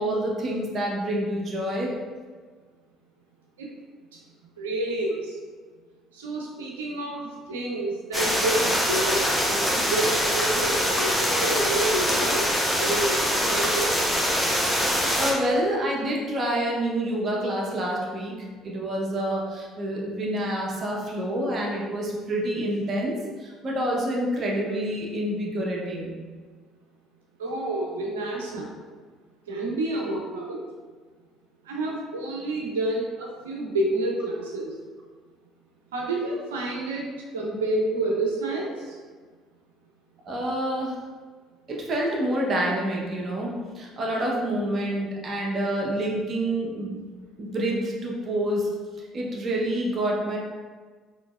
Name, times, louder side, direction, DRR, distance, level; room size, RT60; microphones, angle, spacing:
voice 1, 0.0-1.9 15.2-18.4 18.6-26.1 40.3-41.0 41.7-47.0 47.4-48.7 49.1-50.4, right 1 dB, 45° right, -2 dB, 0.9 m, -27 dB
voice 2, 4.6-5.4 6.1-12.5 12.8-14.0 27.4-28.8 29.5-30.6 31.6-34.7 35.9-37.1 37.3-39.0, right 2 dB, 80° right, -1 dB, 0.6 m, -29 dB
sound 1, 8.1-15.3, equal, 5° left, 0.9 m, -24 dB
3.8 x 3.1 x 2.4 m, 1.5 s
hypercardioid pair, 55°, 0 cm